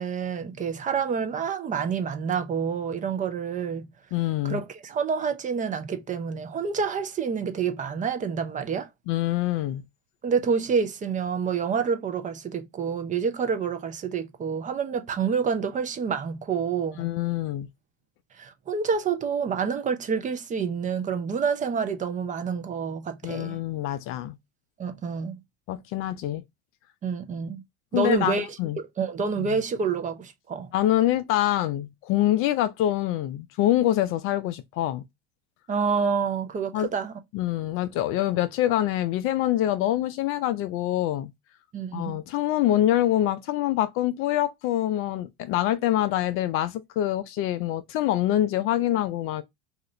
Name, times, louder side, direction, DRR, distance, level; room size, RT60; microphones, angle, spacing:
voice 1, 0.0-3.9 4.4-8.9 10.2-17.1 18.3-23.6 24.8-25.4 27.0-27.6 27.9-30.7 35.7-37.2 41.7-42.2, right 6 dB, 25° right, 0.5 m, -28 dB
voice 2, 4.1-4.6 9.1-9.8 17.0-17.7 23.2-24.4 25.7-26.4 27.9-28.8 30.7-35.0 36.7-36.9 37.3-41.3 41.9-49.4, left 13 dB, 40° left, 0.4 m, -25 dB
2.8 x 2.4 x 3.1 m
hypercardioid pair, 95°, 34 cm